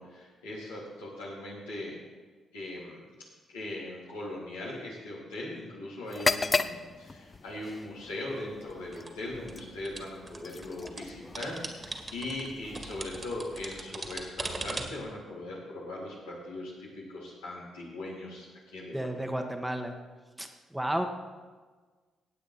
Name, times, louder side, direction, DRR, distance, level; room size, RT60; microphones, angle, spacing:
voice 1, 0.0-2.0 2.5-3.1 3.5-19.1, left 1 dB, 85° left, -7 dB, 3.6 m, -40 dB
sound 1, 6.1-13.9, left 3 dB, 35° left, 0.6 m, -36 dB
sound 2, 8.5-11.0 11.3-15.1, right 2 dB, 30° right, 2.1 m, -40 dB
voice 2, 18.9-19.9 20.4-21.1, right 1 dB, 5° right, 5 dB, 1.5 m, -32 dB
17.0 x 8.7 x 4.3 m, 1.4 s
hypercardioid pair, 40°, 0 cm